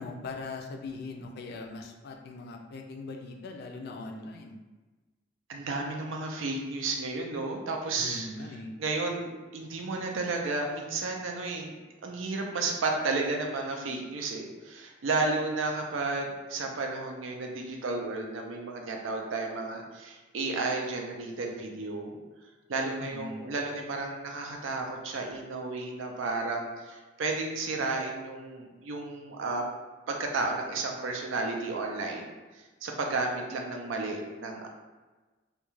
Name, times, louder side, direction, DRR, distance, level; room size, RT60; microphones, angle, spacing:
voice 1, 0.0-4.6 8.0-8.7 23.0-23.4, left 3 dB, 55° left, 3 dB, 0.3 m, -40 dB
voice 2, 5.5-8.3 8.8-11.8 12.0-22.2 22.7-29.6 30.1-34.7, right 3 dB, 85° right, 2 dB, 0.4 m, -32 dB
2.3 x 2.2 x 3.0 m, 1.2 s
head